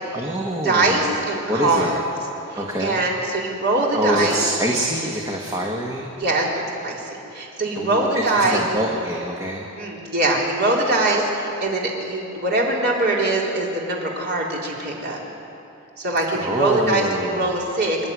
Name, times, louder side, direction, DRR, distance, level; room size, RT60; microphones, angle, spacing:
voice 1, 0.1-1.1 1.5-2.0 2.5-3.0 3.9-6.1 7.7-9.7 16.3-17.5, equal, 15° right, -1 dB, 1.5 m, -25 dB
voice 2, 0.6-2.0 2.8-4.4 6.2-8.6 9.7-15.2 16.0-18.0, right 2 dB, 50° right, -3 dB, 3.8 m, -22 dB
26.0 x 11.0 x 9.7 m, 2.9 s
head